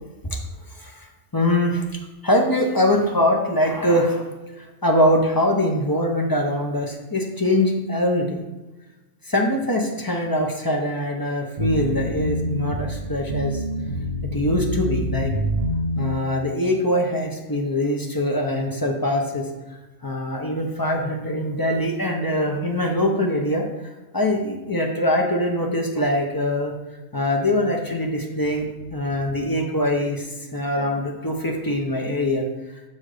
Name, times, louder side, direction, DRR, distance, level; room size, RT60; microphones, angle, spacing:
voice 1, 1.3-1.8 2.2-4.2 4.6-8.4 9.3-13.6 14.2-15.3 16.0-19.5 20.0-23.7 24.1-26.7 27.1-28.7 28.9-32.5, left 1 dB, 20° left, 1 dB, 0.7 m, -23 dB
sound 1, 11.6-16.1, equal, 40° right, 1.0 m, -26 dB
6.2 x 4.1 x 5.0 m, 1.1 s
omnidirectional pair, 1.3 m